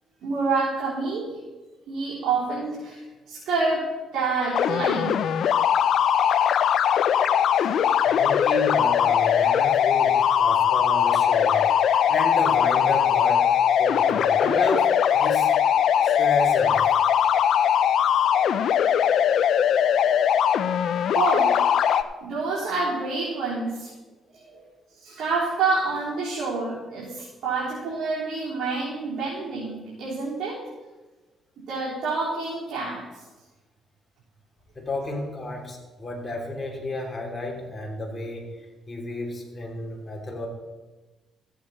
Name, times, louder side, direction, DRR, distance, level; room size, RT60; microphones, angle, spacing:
voice 1, 0.2-1.4 1.9-5.3 7.5-7.7 21.1-21.7 22.2-23.9 24.3-24.6 25.0-30.6 31.7-33.0, right 3 dB, 75° right, -9 dB, 3.7 m, -28 dB
sound 1, 4.5-22.0, left 9 dB, 70° left, 0.5 m, -20 dB
voice 2, 8.0-15.5 16.0-16.8 34.7-38.5 38.9-40.5, left 2 dB, 25° left, -1 dB, 3.1 m, -31 dB
14.0 x 8.4 x 4.3 m, 1.2 s
cardioid pair, 90°, 0 cm